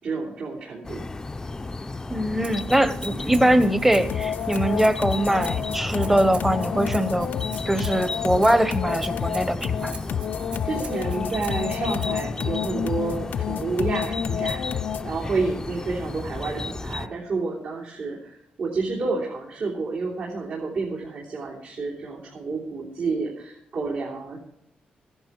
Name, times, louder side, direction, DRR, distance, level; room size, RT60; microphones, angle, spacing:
voice 1, 0.0-1.1 10.6-24.4, right 4 dB, 70° right, -4 dB, 3.2 m, -30 dB
sound 1, 0.8-17.1, left 3 dB, 20° left, 0.5 m, -33 dB
voice 2, 2.1-7.3 7.7-9.9, right 1 dB, 10° right, 11 dB, 0.9 m, -22 dB
Rattle (instrument), 2.4-12.0, right 4 dB, 50° right, 3.2 m, -44 dB
sound 2, 4.1-15.2, left 9 dB, 75° left, 0.4 m, -30 dB
15.0 x 11.0 x 4.6 m, 0.78 s
wide cardioid pair, 140°, 3 cm